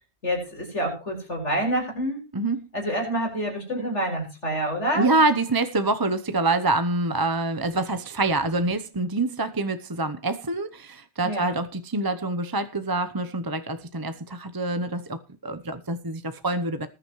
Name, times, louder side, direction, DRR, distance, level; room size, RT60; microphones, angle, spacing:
voice 1, 0.2-2.2 2.7-5.1 11.2-11.5, right 1 dB, 80° left, 5.7 m, -27 dB
voice 2, 2.3-2.7 4.9-16.9, right 2 dB, 20° right, 0.8 m, -26 dB
20.0 x 9.9 x 3.1 m
omnidirectional pair, 1.2 m